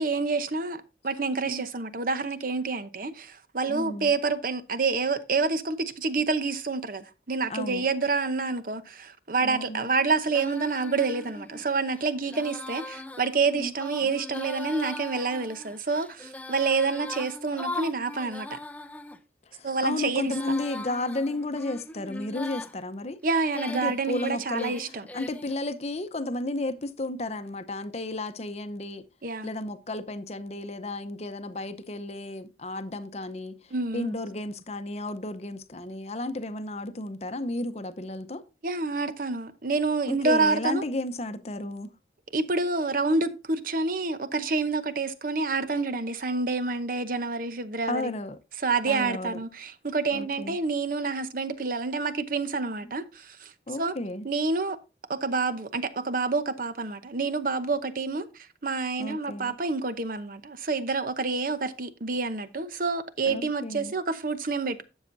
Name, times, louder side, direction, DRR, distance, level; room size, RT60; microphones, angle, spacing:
voice 1, 0.0-18.6 19.6-20.3 23.2-25.1 29.2-29.5 33.7-34.2 38.6-40.8 42.3-48.1 48.6-53.5 53.8-53.9 54.2-54.8 55.1-64.8, right 4 dB, 50° right, 0.8 m, -28 dB
voice 2, 3.7-4.1 7.5-7.8 9.4-9.9 13.5-13.7 14.0-14.1 19.5-23.2 23.7-24.8 25.1-29.1 29.4-38.4 40.1-41.9 47.9-48.4 48.9-49.4 50.1-50.6 53.7-54.3 59.0-59.6 63.2-63.9, left 2 dB, 35° left, 0.8 m, -33 dB
Female singing, 10.3-19.2 19.8-22.7 23.3-25.6, left 2 dB, 10° left, 0.5 m, -40 dB
12.0 x 7.2 x 2.6 m
head